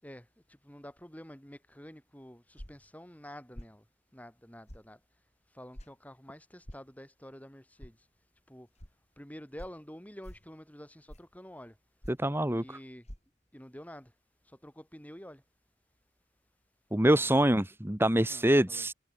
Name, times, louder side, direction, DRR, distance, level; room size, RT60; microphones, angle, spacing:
voice 1, 0.0-3.8 4.1-5.0 5.5-8.0 8.5-8.7 9.2-11.8 12.5-13.1 13.5-14.1 14.6-15.4 17.2-17.5 18.3-18.9, equal, 10° left, 7.6 m, -49 dB
sound 1, 2.6-2.9 3.5-3.8 4.7-4.9 5.7-5.9 6.6-6.9 7.8-7.9 8.8-8.9 9.6-9.8 10.2-10.5 11.1-11.4 12.0-12.3 13.0-13.2, equal, 35° left, 6.5 m, -46 dB
voice 2, 12.1-12.6 16.9-18.9, right 1 dB, 10° right, 1.7 m, -25 dB
head